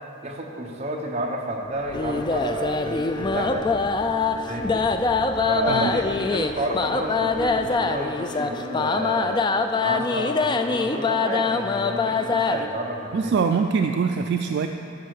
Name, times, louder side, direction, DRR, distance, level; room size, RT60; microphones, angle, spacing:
voice 1, 0.2-3.7 4.5-4.9 5.5-9.4 9.8-13.3, right 1 dB, 35° right, 0 dB, 1.0 m, -30 dB
sound 1, 1.8-7.7, equal, 45° left, 2.0 m, -44 dB
sound 2, 1.9-12.7, left 4 dB, 20° left, 0.3 m, -24 dB
voice 2, 13.1-14.7, right 5 dB, 55° right, 6 dB, 0.3 m, -23 dB
11.0 x 5.7 x 6.4 m, 2.9 s
head